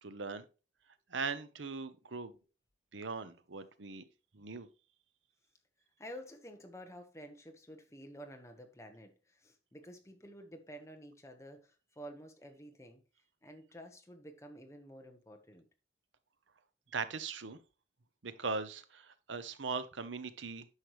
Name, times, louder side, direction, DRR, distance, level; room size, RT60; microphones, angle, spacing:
voice 1, 0.0-0.4 1.1-2.3 2.9-4.0 4.3-4.7 16.9-17.6 18.2-20.7, right 4 dB, 90° right, 0.9 m, -40 dB
voice 2, 6.0-13.0 13.4-15.7, equal, 15° left, 1.1 m, -51 dB
9.7 x 6.5 x 3.1 m
head